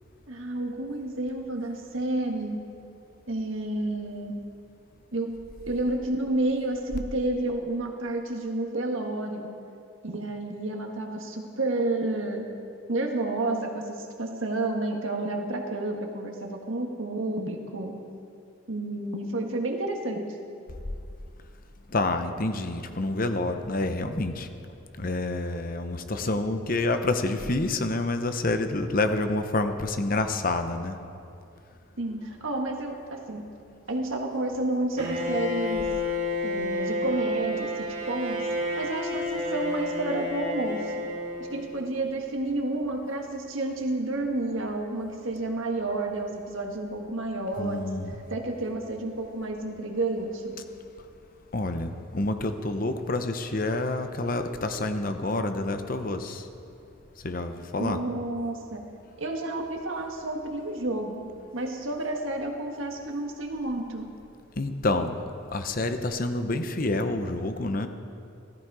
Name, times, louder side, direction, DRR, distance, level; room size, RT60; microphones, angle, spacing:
voice 1, 0.3-2.6 3.3-4.4 5.1-5.4 5.7-9.5 10.0-12.5 12.9-17.9 18.7-20.3 32.0-33.5 33.9-35.9 36.4-38.5 38.7-41.1 41.5-47.9 48.3-50.6 57.8-58.8 59.2-64.1, right 2 dB, 65° right, 2 dB, 1.7 m, -30 dB
voice 2, 21.9-24.5 25.0-31.0 47.6-48.2 51.5-56.4 57.2-58.0 64.6-65.2 65.5-67.9, left 2 dB, 40° left, 7 dB, 0.8 m, -28 dB
Bowed string instrument, 35.0-41.9, left 1 dB, 35° right, 2.2 m, -30 dB
16.5 x 14.5 x 4.9 m, 2.6 s
head